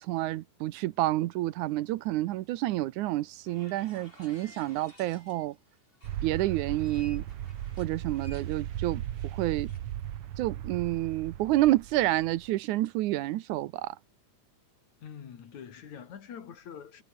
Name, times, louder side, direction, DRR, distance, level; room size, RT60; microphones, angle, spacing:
voice 1, 0.0-5.6 6.2-7.2 7.8-9.0 9.3-9.7 10.4-14.0, right 16 dB, 75° right, 2.1 m, -29 dB
sound 1, 3.5-5.6 5.9-9.8, left 1 dB, 15° left, 6.7 m, -56 dB
sound 2, 6.0-12.5, right 11 dB, 60° right, 1.7 m, -37 dB
voice 2, 15.0-17.0, left 8 dB, 65° left, 3.7 m, -45 dB
omnidirectional pair, 3.6 m